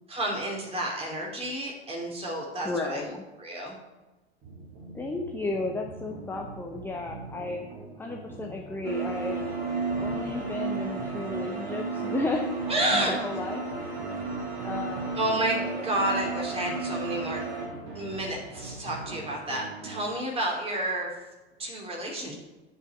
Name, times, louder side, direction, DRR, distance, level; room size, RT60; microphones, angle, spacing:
voice 1, 0.1-3.0 3.4-3.8 12.7-13.1 15.2-17.4 17.9-21.1 21.6-22.3, right 1 dB, 20° right, -1 dB, 2.8 m, -30 dB
voice 2, 2.6-3.2 4.9-7.6 8.0-9.4 10.0-13.9 14.6-15.2 15.6-15.9, left 3 dB, 5° left, 2 dB, 0.8 m, -33 dB
sound 1, 4.4-20.1, right 3 dB, 40° right, 3.0 m, -43 dB
sound 2, 8.8-17.7, right 4 dB, 70° right, 2.7 m, -33 dB
8.4 x 5.5 x 6.9 m, 1.1 s
figure-of-eight pair, 85°, 32 cm